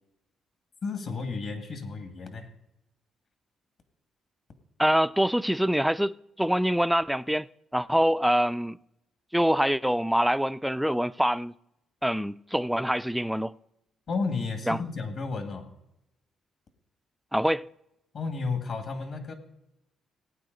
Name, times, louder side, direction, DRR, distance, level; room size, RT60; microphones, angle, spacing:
voice 1, 0.8-2.5 14.1-15.7 18.1-19.3, left 4 dB, 55° left, 2.1 m, -32 dB
voice 2, 4.8-7.5 7.7-8.8 9.3-11.5 12.0-13.5 14.7-14.8 17.3-17.6, equal, ahead, 0.3 m, -25 dB
18.0 x 9.0 x 4.0 m
cardioid pair, 90°, 0 cm